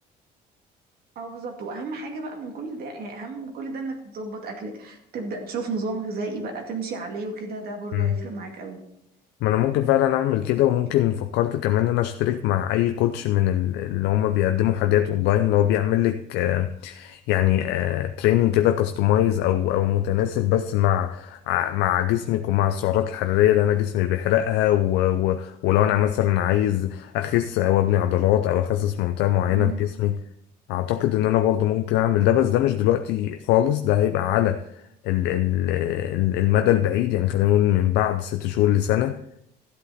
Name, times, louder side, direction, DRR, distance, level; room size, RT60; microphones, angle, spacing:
voice 1, 1.2-8.8 29.5-29.9, right 3 dB, 65° right, 2.2 m, -33 dB
voice 2, 9.4-30.2 30.7-34.6 35.0-39.2, left 12 dB, 90° left, 0.5 m, -22 dB
13.0 x 8.2 x 4.2 m
cardioid pair, 110°, 17 cm